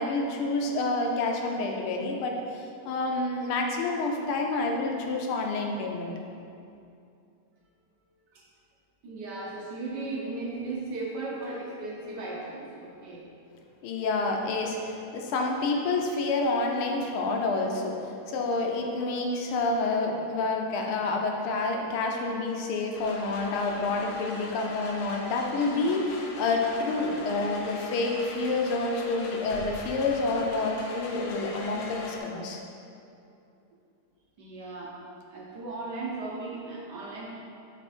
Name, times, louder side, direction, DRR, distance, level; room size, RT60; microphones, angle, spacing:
voice 1, 0.0-6.1 13.8-32.6, left 3 dB, 80° left, 1 dB, 1.6 m, -28 dB
voice 2, 9.0-13.3 34.4-35.0 35.3-37.3, right 3 dB, 65° right, -3 dB, 1.3 m, -36 dB
sound 1, 22.9-32.2, left 2 dB, 65° left, 1.4 m, -41 dB
8.0 x 4.1 x 4.3 m, 2.6 s
omnidirectional pair, 2.4 m